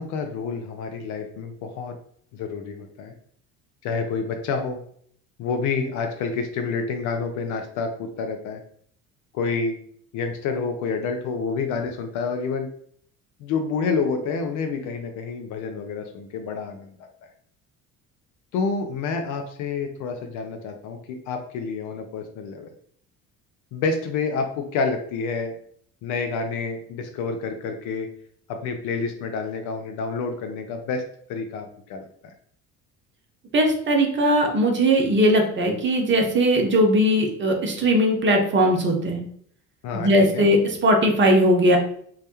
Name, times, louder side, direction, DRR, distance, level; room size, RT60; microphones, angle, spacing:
voice 1, 0.0-1.9 2.3-3.1 3.8-4.8 5.4-8.6 9.3-9.8 10.1-12.7 13.4-17.3 18.5-22.7 23.7-25.5 26.0-28.1 28.5-31.0 31.3-32.3 39.8-40.4, left 4 dB, 45° left, 5 dB, 0.4 m, -28 dB
voice 2, 33.5-39.2 39.9-41.8, equal, 30° right, 2 dB, 0.6 m, -19 dB
2.2 x 2.1 x 2.8 m, 0.62 s
figure-of-eight pair, 55°, 43 cm